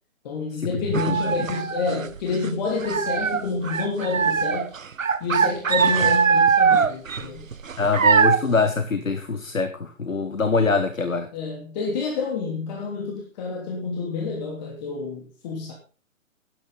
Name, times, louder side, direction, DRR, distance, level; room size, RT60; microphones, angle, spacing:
voice 1, 0.2-4.7 5.2-7.5 11.3-15.7, left 4 dB, 30° left, -1 dB, 3.0 m, -28 dB
sound 1, 0.9-2.5 2.8-8.5, right 6 dB, 75° right, 1.0 m, -21 dB
voice 2, 7.8-11.3, left 4 dB, 80° left, 9 dB, 1.5 m, -23 dB
13.5 x 10.5 x 4.0 m, 0.37 s
figure-of-eight pair, 135°, 40 cm